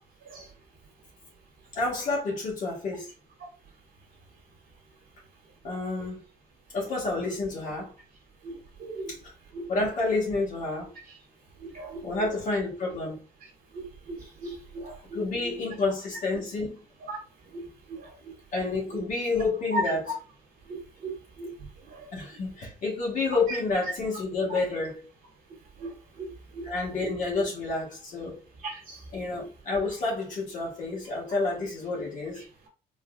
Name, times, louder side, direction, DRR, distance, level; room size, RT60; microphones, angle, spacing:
voice 1, 1.7-3.1 5.6-6.2 6.7-7.9 9.1-9.3 9.7-10.9 12.0-13.2 15.1-16.8 18.5-20.0 22.1-25.1 26.6-28.4 29.1-32.4, left 3 dB, 50° left, 1.4 m, -29 dB
voice 2, 8.4-9.1 9.5-9.7 11.6-12.0 13.7-15.6 17.1-17.2 17.5-18.2 18.9-19.0 19.7-19.8 20.7-21.5 21.9-22.1 25.8-26.7 28.6-29.0, right 1 dB, 55° right, 1.5 m, -38 dB
3.9 x 2.6 x 2.3 m
cardioid pair, 175°, 17 cm